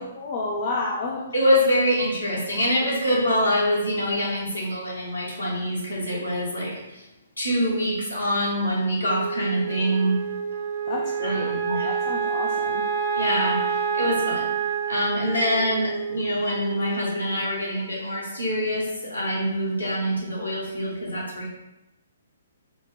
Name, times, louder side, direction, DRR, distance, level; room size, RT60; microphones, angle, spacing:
voice 1, 0.0-1.3 10.9-12.8, left 3 dB, 40° left, -2 dB, 0.5 m, -31 dB
voice 2, 1.3-7.1 7.4-10.2 11.2-11.9 13.1-21.5, equal, 80° left, -5 dB, 1.4 m, -25 dB
Wind instrument woodwind instrument, 9.0-17.5, right 6 dB, 70° right, 0.9 m, -28 dB
4.5 x 2.1 x 3.8 m, 0.96 s
figure-of-eight pair, 125°, 0 cm